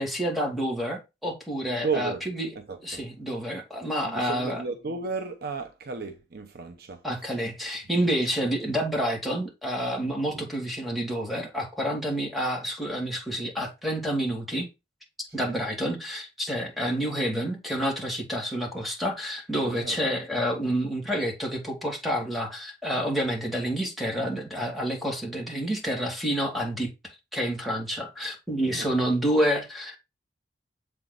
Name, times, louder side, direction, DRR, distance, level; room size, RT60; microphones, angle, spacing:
voice 1, 0.0-2.5 2.8-4.6 7.0-14.7 15.3-26.9 27.3-30.0, equal, ahead, 2.4 m, -28 dB
voice 2, 1.7-2.2 2.5-3.0 4.0-7.0 10.3-10.5 15.3-15.6 19.7-20.0 28.7-28.9, right 4 dB, 55° right, 0.8 m, -34 dB
7.5 x 4.4 x 4.0 m
head